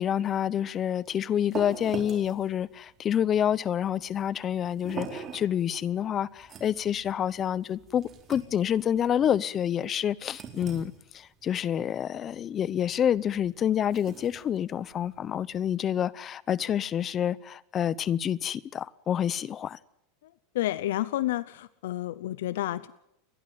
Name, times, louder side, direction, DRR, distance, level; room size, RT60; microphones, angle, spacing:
voice 1, 0.0-19.8, left 9 dB, 30° left, 0.7 m, -28 dB
sound 1, 0.8-15.8, right 7 dB, 30° right, 4.2 m, -45 dB
voice 2, 20.5-22.9, left 14 dB, 80° left, 0.7 m, -30 dB
30.0 x 11.5 x 9.3 m
supercardioid pair, 135°, 0 cm